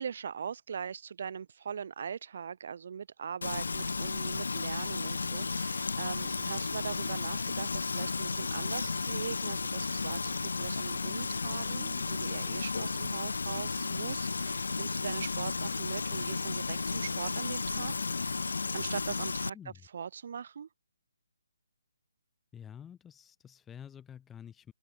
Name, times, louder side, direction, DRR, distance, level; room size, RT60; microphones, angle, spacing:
voice 1, 0.0-17.9 18.7-19.6 19.9-20.7, right 7 dB, 50° right, 0.6 m, -40 dB
Frying (food), 3.4-19.5, left 4 dB, 80° left, 0.6 m, -33 dB
voice 2, 19.5-19.9 22.5-24.7, left 8 dB, 10° left, 1.7 m, -49 dB
open air
hypercardioid pair, 155°, 0 cm